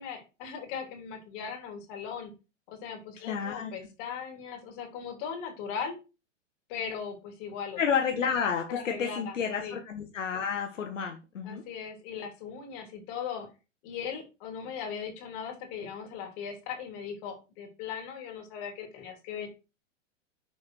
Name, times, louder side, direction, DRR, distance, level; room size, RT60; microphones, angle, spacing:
voice 1, 0.0-2.3 2.7-6.0 6.7-7.8 8.7-9.3 9.6-9.8 11.4-13.5 13.8-19.5, left 7 dB, 45° left, 3 dB, 3.3 m, -38 dB
voice 2, 3.3-3.7 7.8-11.6, left 7 dB, 80° left, 3 dB, 1.5 m, -30 dB
6.9 x 4.8 x 4.7 m, 0.29 s
hypercardioid pair, 120°, 38 cm